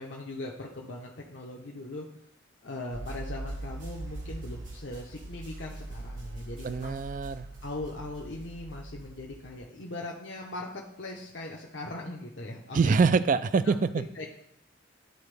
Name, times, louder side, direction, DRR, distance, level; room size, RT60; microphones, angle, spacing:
voice 1, 0.0-2.0 2.6-7.0 7.6-12.9 13.9-14.3, left 2 dB, 65° left, -2 dB, 0.8 m, -40 dB
sound 1, 2.9-9.6, right 2 dB, 70° right, 1.6 m, -41 dB
voice 2, 6.6-7.5 12.7-14.0, right 5 dB, 40° right, 13 dB, 0.3 m, -25 dB
11.5 x 4.1 x 3.3 m, 0.77 s
head